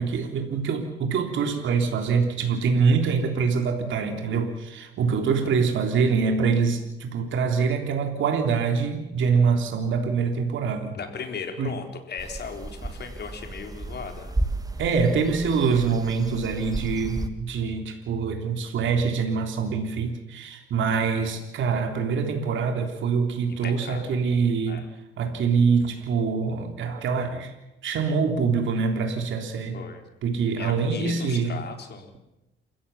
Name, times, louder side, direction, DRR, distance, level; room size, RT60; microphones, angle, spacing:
voice 1, 0.0-11.0 11.6-11.8 14.8-24.9 25.2-27.5 27.8-29.8 30.2-31.6, right 5 dB, 75° right, 4 dB, 3.5 m, -24 dB
voice 2, 10.9-14.3 14.9-15.2 21.3-21.4 23.6-24.2 24.7-24.9 29.7-30.0 30.6-32.1, left 5 dB, 55° left, 4 dB, 4.1 m, -37 dB
sound 1, 12.2-17.3, right 2 dB, 20° right, 2.2 m, -33 dB
28.0 x 15.5 x 7.2 m, 0.97 s
cardioid pair, 90°, 20 cm